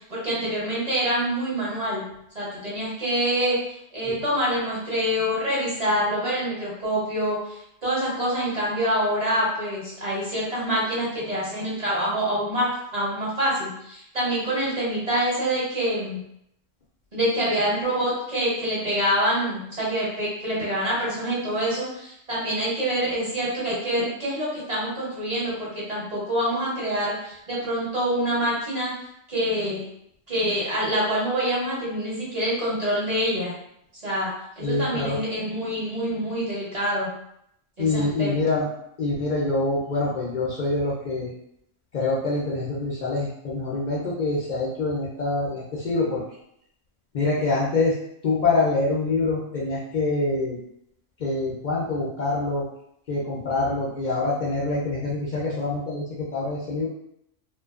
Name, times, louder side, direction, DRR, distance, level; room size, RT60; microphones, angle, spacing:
voice 1, 0.1-2.0 2.3-16.2 17.1-28.9 29.3-29.8 30.3-33.5 34.0-37.2 37.8-38.3, equal, 40° right, -7 dB, 0.8 m, -26 dB
voice 2, 34.6-35.2 37.8-38.7 39.0-41.3 41.9-46.2 47.1-47.9 48.2-50.6 51.2-52.6 53.1-56.9, left 3 dB, 65° left, -5 dB, 0.4 m, -25 dB
2.4 x 2.2 x 2.3 m, 0.75 s
omnidirectional pair, 1.3 m